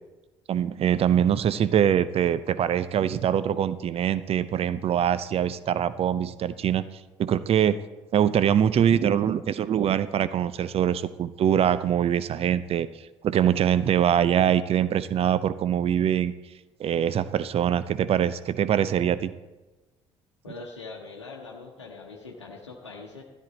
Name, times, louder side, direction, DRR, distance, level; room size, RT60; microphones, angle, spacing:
voice 1, 0.5-6.8 7.2-7.8 8.1-12.9 13.2-16.3 16.8-19.3, right 9 dB, 40° right, 15 dB, 0.6 m, -23 dB
voice 2, 20.4-23.2, left 3 dB, 85° left, -1 dB, 0.9 m, -42 dB
13.0 x 10.5 x 4.1 m, 1.1 s
figure-of-eight pair, 50°, 15 cm